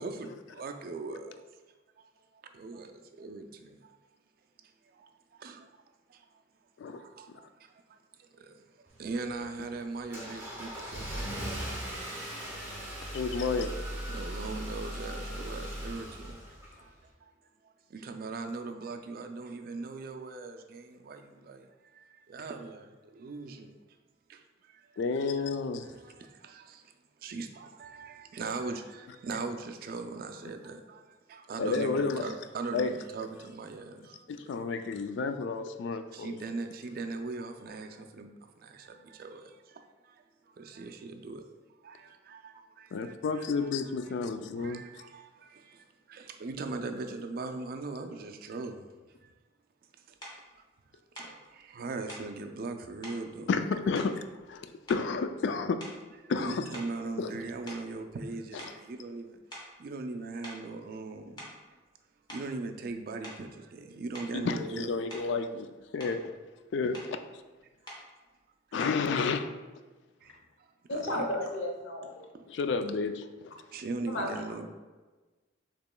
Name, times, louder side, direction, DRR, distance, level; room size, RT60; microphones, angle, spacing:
voice 1, 0.0-1.5 2.0-2.1 2.5-4.0 4.9-5.7 6.1-6.2 6.9-8.5 9.0-11.5 13.5-13.7 14.1-16.9 17.2-17.3 17.9-23.8 24.3-24.8 25.8-26.9 27.2-34.6 35.9-41.4 41.8-44.1 44.6-48.9 49.2-49.3 50.1-50.2 51.2-53.5 56.3-59.4 59.8-61.5 62.3-64.9 70.2-71.3 72.3-72.4 73.7-74.7, right 3 dB, 50° right, 0.3 m, -40 dB
Car / Engine starting, 8.9-17.0, equal, 10° right, 0.9 m, -39 dB
voice 2, 13.1-13.7 25.0-25.9 31.6-32.2 32.7-32.9 34.5-36.4 42.9-44.8 53.5-54.2 54.5-55.8 56.3-56.7 57.2-57.3 64.3-65.7 65.9-66.3 66.7-67.2 68.7-69.5 72.5-73.5, left 4 dB, 65° left, 0.3 m, -31 dB
sound 1, 50.2-50.4 51.1-51.4 52.1-52.3 53.0-53.2 53.9-54.6 54.9-55.3 55.8-56.1 56.7-58.3 58.6-58.8 59.5-59.8 60.4-60.7 61.2-61.7 62.3-62.5 63.2-63.5 64.1-64.4 65.1-65.4 65.8-66.2 66.9-67.2 67.9-68.1 68.8-69.1, equal, 20° left, 0.9 m, -46 dB
voice 3, 70.9-72.3 74.1-74.7, left 1 dB, 85° left, 0.8 m, -34 dB
6.7 x 2.9 x 2.2 m
head